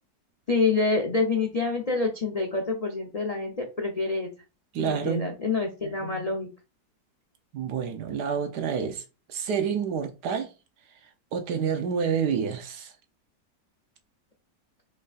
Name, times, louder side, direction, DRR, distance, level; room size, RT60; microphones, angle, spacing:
voice 1, 0.5-4.3 4.8-6.5, left 3 dB, 70° left, 0.3 m, -27 dB
voice 2, 4.7-5.3 7.5-9.0 9.3-10.5 11.3-12.9, right 7 dB, 75° right, 1.3 m, -28 dB
4.8 x 4.5 x 2.4 m
omnidirectional pair, 1.9 m